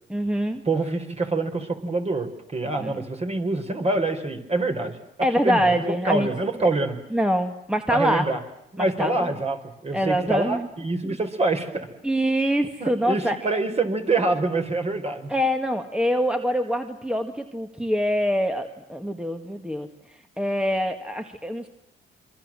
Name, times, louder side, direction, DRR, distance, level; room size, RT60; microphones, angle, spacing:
voice 1, 0.1-0.6 2.8-3.0 5.2-6.3 6.6-6.7 7.1-8.3 8.8-9.3 9.9-10.7 11.0-11.2 12.0-13.6 15.3-19.9 20.4-21.7, equal, 5° right, 6 dB, 1.9 m, -25 dB
voice 2, 0.6-7.0 7.9-8.4 8.7-11.9 12.8-15.3, right 2 dB, 30° right, 6 dB, 4.7 m, -26 dB
26.5 x 23.5 x 7.6 m, 0.83 s
cardioid pair, 90°, 20 cm